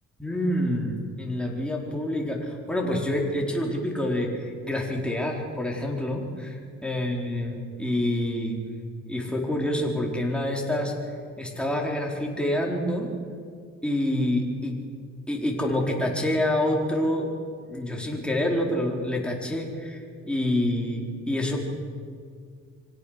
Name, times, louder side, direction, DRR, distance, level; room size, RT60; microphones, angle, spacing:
voice 1, 0.2-8.6 9.1-10.9 11.4-13.1 13.8-14.8 15.3-17.3 17.7-21.6, left 1 dB, 5° left, -1 dB, 4.4 m, -27 dB
24.5 x 17.0 x 6.6 m, 2.2 s
cardioid pair, 90°, 30 cm